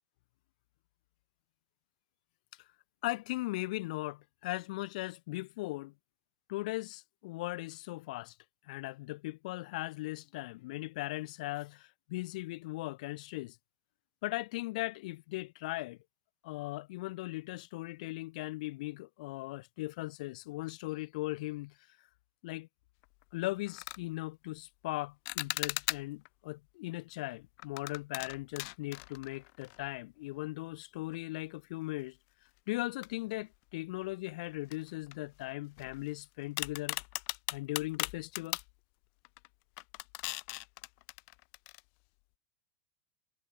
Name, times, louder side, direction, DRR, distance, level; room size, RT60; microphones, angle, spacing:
voice 1, 3.0-5.9 6.5-8.3 8.7-13.6 14.2-16.0 16.4-21.7 22.4-22.7 23.3-32.2 32.7-37.0 37.5-38.6, left 20 dB, 60° left, 2.3 m, -38 dB
sound 1, 23.0-23.2 23.7-24.0 25.3-26.3 27.6-30.0 30.3-30.4 31.1-31.2 33.0-33.7 34.0-34.1 34.7-36.1 36.6-38.7 39.2-39.5 39.8-41.8, left 40 dB or more, 45° left, 0.6 m, -39 dB
supercardioid pair, 175°, 5 cm